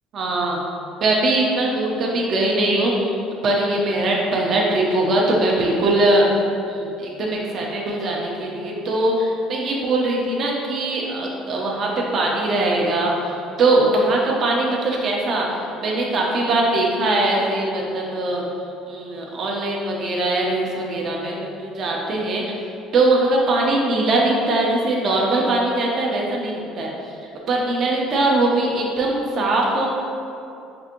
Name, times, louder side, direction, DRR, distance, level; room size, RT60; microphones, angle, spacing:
voice 1, 0.1-0.6 1.0-3.2 3.4-6.3 6.7-18.4 18.9-22.4 22.9-27.2 27.5-29.9, right 2 dB, 50° right, -2 dB, 0.7 m, -21 dB
5.3 x 2.6 x 2.9 m, 2.7 s
cardioid pair, 105°, 0 cm